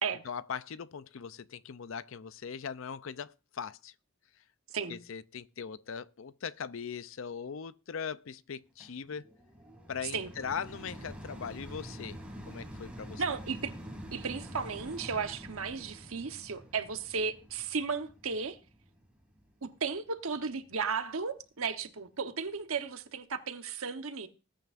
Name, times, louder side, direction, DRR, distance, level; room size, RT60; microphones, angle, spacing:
voice 1, 0.2-3.9 4.9-9.2 9.9-12.2 12.5-13.2, left 6 dB, 65° left, 0.5 m, -40 dB
sound 1, 8.8-20.1 20.7-20.8, equal, 5° right, 2.4 m, -47 dB
voice 2, 13.2-13.7 14.1-18.6 19.6-24.3, right 5 dB, 75° right, 1.1 m, -34 dB
20.0 x 9.1 x 2.5 m
head